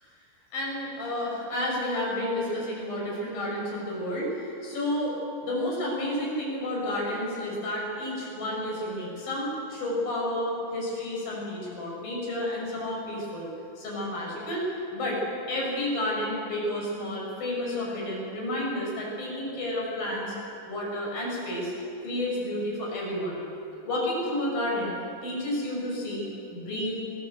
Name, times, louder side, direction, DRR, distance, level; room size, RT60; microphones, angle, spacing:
voice 1, 0.5-5.2 5.4-13.5 13.8-14.7 14.9-15.2 15.5-20.3 20.7-21.7 22.0-23.4 23.8-24.9 25.2-26.3 26.5-27.0, left 1 dB, 80° left, -3 dB, 7.8 m, -31 dB
23.5 x 17.5 x 8.1 m, 2.9 s
omnidirectional pair, 4.1 m